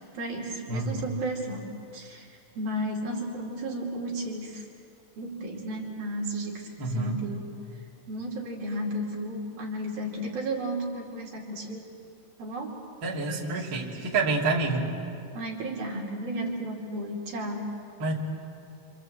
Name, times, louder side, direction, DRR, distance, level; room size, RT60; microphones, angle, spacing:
voice 1, 0.1-4.6 5.2-11.9 12.4-12.8 13.3-14.1 15.3-17.7, right 1 dB, 55° right, -2 dB, 4.2 m, -34 dB
voice 2, 0.7-1.0 6.8-7.2 13.0-14.9 18.0-18.1, right 3 dB, 30° right, -4 dB, 3.2 m, -28 dB
28.0 x 26.5 x 7.9 m, 2.5 s
omnidirectional pair, 5.2 m